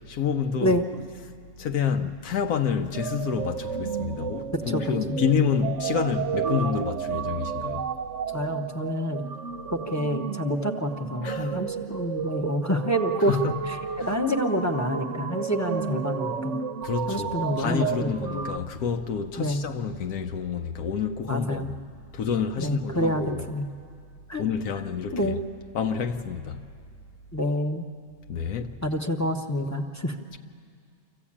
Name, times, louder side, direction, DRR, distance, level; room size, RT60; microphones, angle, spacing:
voice 1, 0.1-0.8 1.1-1.3 1.6-7.9 11.2-11.6 13.2-14.1 16.8-21.8 22.1-23.4 24.4-25.3 25.7-26.6 28.3-28.8 30.3-30.4, left 7 dB, 85° left, 1.2 m, -28 dB
sound 1, 2.9-18.6, right 7 dB, 60° right, 0.9 m, -32 dB
voice 2, 4.5-5.2 8.3-9.3 9.7-13.4 13.6-16.6 17.1-18.5 19.4-19.6 21.3-21.7 22.6-23.7 24.3-24.4 25.1-25.4 27.3-27.9 28.8-30.2, equal, 15° left, 0.7 m, -27 dB
25.0 x 15.5 x 8.6 m
omnidirectional pair, 1.5 m